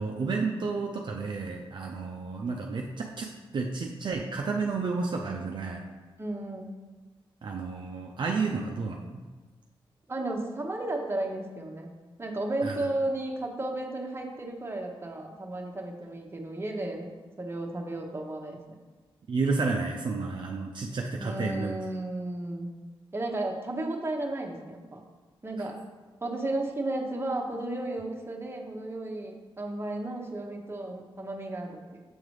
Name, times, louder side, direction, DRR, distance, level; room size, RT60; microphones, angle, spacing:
voice 1, 0.0-5.8 7.4-9.2 12.6-12.9 19.3-21.8, right 4 dB, 55° right, 1 dB, 0.5 m, -31 dB
voice 2, 6.2-6.7 10.1-11.9 12.2-18.6 21.2-22.7 23.1-25.0 25.4-25.8 26.2-32.0, right 2 dB, 25° right, 1 dB, 0.9 m, -33 dB
7.8 x 3.8 x 3.2 m, 1.3 s
cardioid pair, 75°, 9 cm